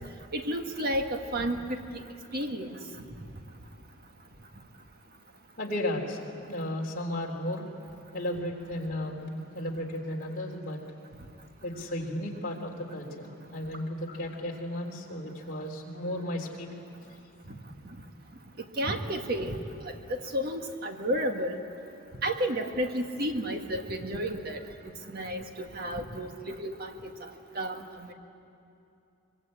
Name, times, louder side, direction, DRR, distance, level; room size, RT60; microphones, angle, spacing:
voice 1, 0.3-2.0 2.3-2.8 17.5-17.6 18.8-19.6 20.1-21.6 22.2-24.6 25.1-27.3 27.5-28.1, equal, 45° right, 4 dB, 1.7 m, -32 dB
voice 2, 5.6-6.2 6.5-7.7 8.1-10.8 11.6-16.7, left 1 dB, 40° left, -1 dB, 3.5 m, -34 dB
24.5 x 23.5 x 8.6 m, 2.7 s
head